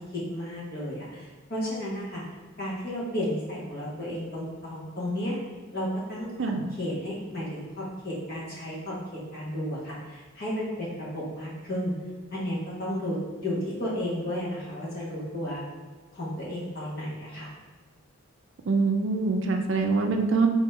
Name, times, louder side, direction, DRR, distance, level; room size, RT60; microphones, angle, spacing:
voice 1, 0.1-2.2 2.6-5.4 5.7-6.3 6.8-9.0 9.3-11.9 12.3-15.6 16.1-17.5, equal, 45° left, -6 dB, 1.3 m, -33 dB
voice 2, 6.4-6.7 18.7-20.5, right 4 dB, 60° right, 4 dB, 0.4 m, -24 dB
3.5 x 2.9 x 4.3 m, 1.4 s
head